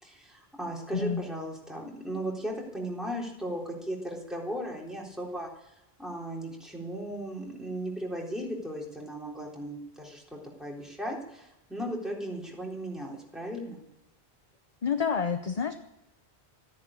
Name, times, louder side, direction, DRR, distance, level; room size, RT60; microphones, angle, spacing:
voice 1, 0.0-10.2 10.6-13.8, right 1 dB, ahead, -2 dB, 3.8 m, -36 dB
voice 2, 14.8-15.7, left 6 dB, 40° left, 8 dB, 0.8 m, -28 dB
14.5 x 10.5 x 8.9 m, 0.86 s
omnidirectional pair, 1.1 m